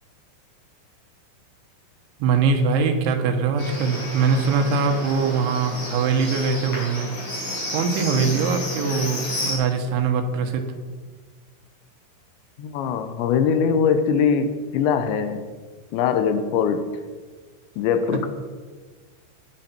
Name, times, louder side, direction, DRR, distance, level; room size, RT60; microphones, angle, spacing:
voice 1, 2.2-7.1 7.7-10.7, right 5 dB, 85° right, 3.7 m, -22 dB
Livestock farm animals working animals, 3.6-9.5, left 1 dB, 35° left, 5.9 m, -31 dB
voice 2, 12.6-15.5 15.9-17.0 17.8-18.3, left 6 dB, 80° left, 3.1 m, -22 dB
16.0 x 11.0 x 4.4 m
omnidirectional pair, 5.3 m